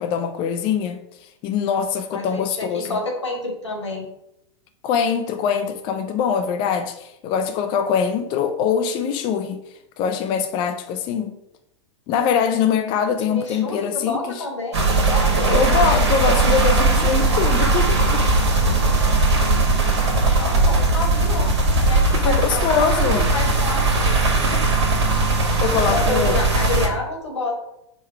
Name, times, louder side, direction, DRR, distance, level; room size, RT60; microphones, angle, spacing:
voice 1, 0.0-3.0 4.8-11.4 12.1-14.4 15.5-18.3 22.1-23.3 25.6-26.4, left 7 dB, 35° left, 0.4 m, -23 dB
voice 2, 2.1-4.1 13.3-15.6 20.4-21.5 21.8-24.4 25.8-27.6, left 2 dB, 85° left, 1.3 m, -29 dB
sound 1, 14.7-26.9, right 3 dB, 70° right, 1.1 m, -19 dB
4.8 x 2.3 x 4.4 m
figure-of-eight pair, 100°, 15 cm